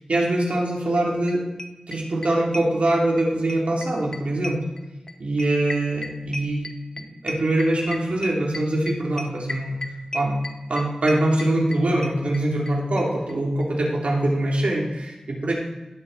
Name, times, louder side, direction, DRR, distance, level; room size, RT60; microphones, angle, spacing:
voice 1, 0.1-1.4 1.9-4.6 5.2-6.7 7.0-9.8 10.1-10.4 10.7-15.5, right 1 dB, 90° right, -2 dB, 2.8 m, -23 dB
sound 1, 1.0-1.1 1.3-1.4 1.6-3.2 3.5-12.7 13.0-13.1 13.3-13.4 13.6-13.7, left 1 dB, 35° left, 1.0 m, -34 dB
17.5 x 6.2 x 4.0 m, 1.1 s
wide cardioid pair, 50°, 2 cm